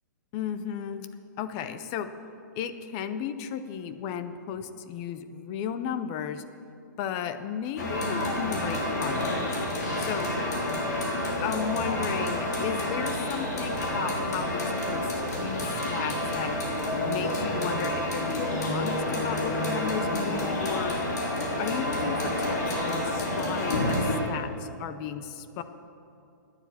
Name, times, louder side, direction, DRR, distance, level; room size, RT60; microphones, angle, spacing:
voice 1, 0.3-1.1 1.4-2.1 2.6-6.4 7.0-9.4 10.0-10.3 11.4-16.6 17.0-21.0 21.6-25.6, left 8 dB, 20° left, 11 dB, 0.4 m, -34 dB
sound 1, 7.8-24.2, left 1 dB, 60° left, 3.4 m, -29 dB
11.0 x 9.7 x 8.5 m, 2.7 s
hypercardioid pair, 175°, 10 cm